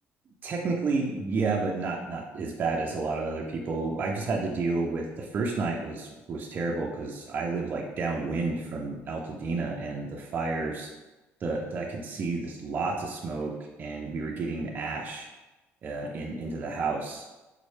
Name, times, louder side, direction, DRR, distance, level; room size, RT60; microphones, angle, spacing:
voice 1, 0.4-10.9 11.4-15.3 15.8-17.2, right 3 dB, 35° right, -1 dB, 0.4 m, -31 dB
4.1 x 2.1 x 3.1 m, 1.1 s
cardioid pair, 140°, 5 cm